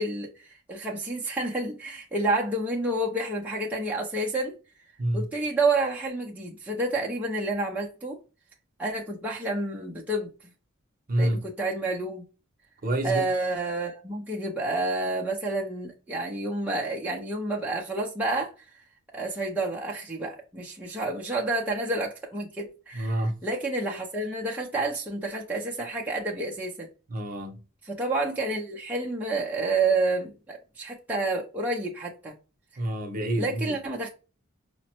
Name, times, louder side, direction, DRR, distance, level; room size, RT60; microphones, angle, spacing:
voice 1, 0.0-4.5 5.1-8.2 8.8-10.3 11.2-12.2 13.0-18.5 19.1-26.9 27.8-32.3 33.4-34.1, right 2 dB, 10° right, 0.5 m, -29 dB
voice 2, 11.1-11.4 12.8-13.2 22.9-23.3 27.1-27.6 32.8-33.8, right 1 dB, 40° right, 0.7 m, -27 dB
4.9 x 2.0 x 2.9 m
head